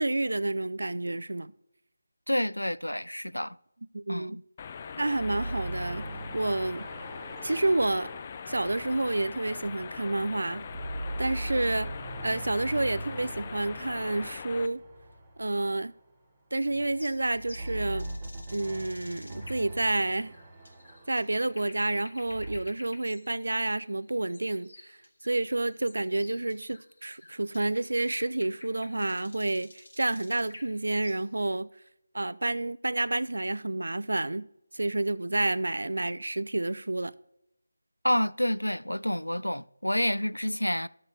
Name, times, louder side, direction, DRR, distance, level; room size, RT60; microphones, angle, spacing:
voice 1, 0.0-1.5 3.9-4.4 5.0-6.9 7.4-8.1 8.5-10.7 11.2-12.0 12.2-14.8 15.4-15.9 16.5-18.1 18.5-20.3 21.1-25.0 25.2-31.7 32.1-34.5 34.7-37.1, right 2 dB, 65° right, 0.4 m, -29 dB
voice 2, 2.3-3.6 4.1-4.4 38.0-40.9, equal, 90° left, 0.3 m, -28 dB
sound 1, 4.6-14.7, left 6 dB, 25° left, 0.4 m, -42 dB
sound 2, 5.2-10.1 10.5-15.8 16.6-22.6, right 1 dB, 20° right, 1.2 m, -41 dB
sound 3, 16.6-31.5, left 2 dB, 65° left, 1.7 m, -52 dB
12.5 x 11.5 x 2.7 m
figure-of-eight pair, 160°, 0 cm